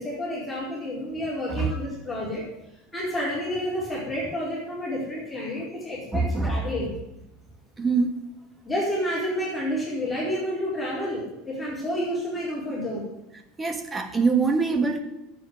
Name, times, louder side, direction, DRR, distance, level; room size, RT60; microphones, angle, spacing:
voice 1, 0.0-2.4 2.9-6.9 8.6-13.1, equal, 5° left, -7 dB, 4.8 m, -30 dB
voice 2, 6.1-6.6 7.8-8.2 13.6-15.0, right 4 dB, 15° right, 7 dB, 1.6 m, -24 dB
11.0 x 8.1 x 9.9 m, 0.89 s
supercardioid pair, 145°, 0 cm